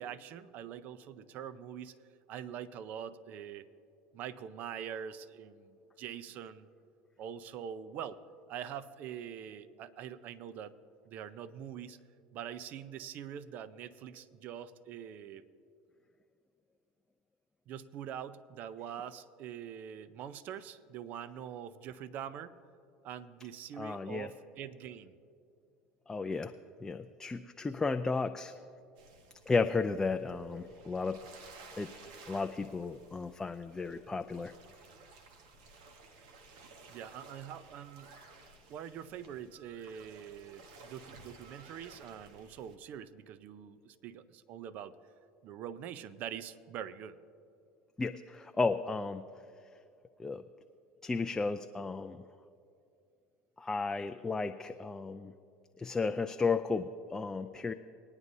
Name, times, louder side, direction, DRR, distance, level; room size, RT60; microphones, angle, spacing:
voice 1, 0.0-1.9 2.3-3.7 4.1-6.7 7.2-8.2 8.5-10.7 11.1-12.0 12.3-15.4 17.7-22.5 23.0-25.2 36.9-38.1 38.7-45.0 45.4-47.2, right 9 dB, 55° right, 14 dB, 0.5 m, -44 dB
voice 2, 23.8-24.3 26.1-26.5 26.8-28.5 29.5-31.2 31.8-31.9 32.3-34.5 48.0-49.2 50.2-50.4 51.0-52.2 53.6-55.3 55.8-57.7, left 4 dB, 15° left, 7 dB, 0.4 m, -33 dB
sound 1, 29.0-42.8, right 3 dB, 75° right, 1.1 m, -56 dB
20.5 x 9.7 x 2.7 m, 2.4 s
hypercardioid pair, 90°, 3 cm